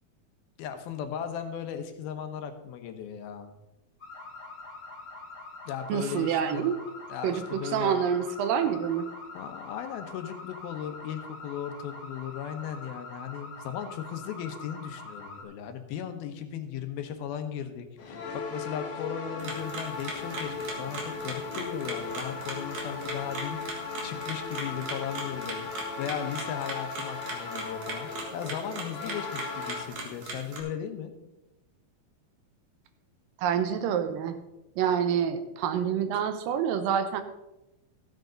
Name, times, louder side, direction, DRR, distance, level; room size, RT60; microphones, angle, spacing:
voice 1, 0.6-3.5 5.7-6.8 7.1-8.0 9.3-25.7 26.0-31.1, left 9 dB, 85° left, 7 dB, 2.9 m, -37 dB
sound 1, 4.0-15.4, left 3 dB, 30° left, 1.4 m, -44 dB
voice 2, 5.9-6.8 7.2-7.4 7.7-9.1 33.4-34.4 34.8-37.2, right 8 dB, 75° right, 9 dB, 2.4 m, -27 dB
sound 2, 18.0-29.9, left 4 dB, 50° left, 1.8 m, -37 dB
sound 3, 19.4-30.6, right 3 dB, 55° right, 2.9 m, -39 dB
14.5 x 9.1 x 3.9 m, 0.96 s
omnidirectional pair, 4.2 m